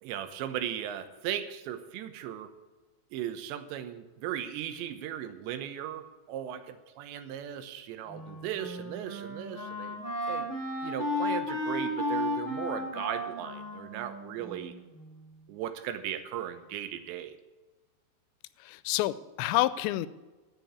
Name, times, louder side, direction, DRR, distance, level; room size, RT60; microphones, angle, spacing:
voice 1, 0.0-2.5 3.1-10.0 10.3-10.5 10.8-14.8 15.5-17.3, right 10 dB, 80° right, 10 dB, 3.2 m, -37 dB
Wind instrument woodwind instrument, 8.1-15.2, left 1 dB, 5° left, 2.7 m, -34 dB
voice 2, 18.6-20.1, left 16 dB, 90° left, 16 dB, 2.9 m, -28 dB
13.0 x 7.6 x 8.6 m, 1.2 s
omnidirectional pair, 5.1 m